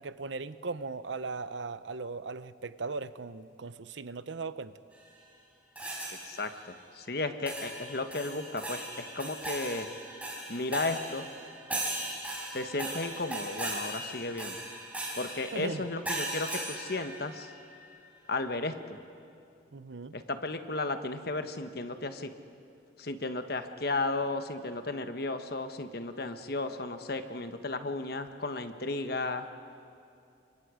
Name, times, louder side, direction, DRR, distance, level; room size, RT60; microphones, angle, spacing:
voice 1, 0.0-4.7 15.5-15.8 19.7-20.1, right 4 dB, 80° right, 14 dB, 0.7 m, -38 dB
sound 1, 5.8-6.5 7.5-17.7, right 1 dB, 10° right, 5.0 m, -38 dB
voice 2, 6.2-9.9 10.5-11.3 12.5-14.7 15.2-17.5 18.3-19.0 20.1-22.3 23.0-29.5, left 2 dB, 55° left, 8 dB, 1.2 m, -34 dB
30.0 x 24.5 x 5.0 m, 2.5 s
head